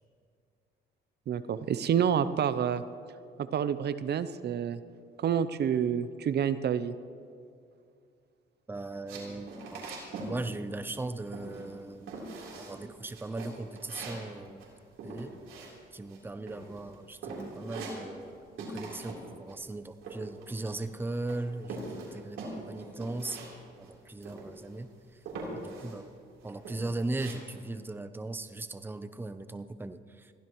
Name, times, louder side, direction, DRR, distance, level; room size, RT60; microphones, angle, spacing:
voice 1, 1.3-2.8 3.4-4.8 5.2-6.9, right 8 dB, 55° right, 13 dB, 0.6 m, -28 dB
voice 2, 8.7-9.9 10.2-12.2 12.6-14.7 15.0-15.3 15.9-23.4 23.8-25.2 25.5-26.1 26.4-30.3, right 2 dB, 10° right, 11 dB, 0.6 m, -38 dB
sound 1, 9.1-10.4 10.6-11.1 11.3-11.8 12.1-12.8 13.1-16.2 16.5-16.9 17.2-18.3 18.6-19.2 19.5-20.9 21.3-23.5 23.8-23.9 24.2-24.8 25.3-26.0 26.4-27.3, right 3 dB, 90° right, 3.7 m, -42 dB
22.0 x 15.5 x 3.1 m, 2.3 s
cardioid pair, 90°, 20 cm